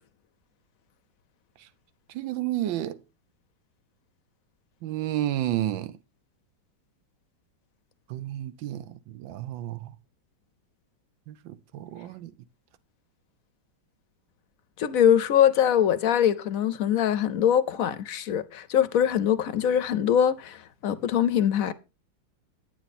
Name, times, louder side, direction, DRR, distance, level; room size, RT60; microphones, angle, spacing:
voice 1, 2.1-3.0 4.8-5.9 8.1-8.8 9.1-9.9 11.3-12.3, right 13 dB, 90° right, 1.4 m, -31 dB
voice 2, 14.8-21.7, left 9 dB, 65° left, 0.9 m, -23 dB
10.5 x 8.8 x 4.2 m
omnidirectional pair, 2.0 m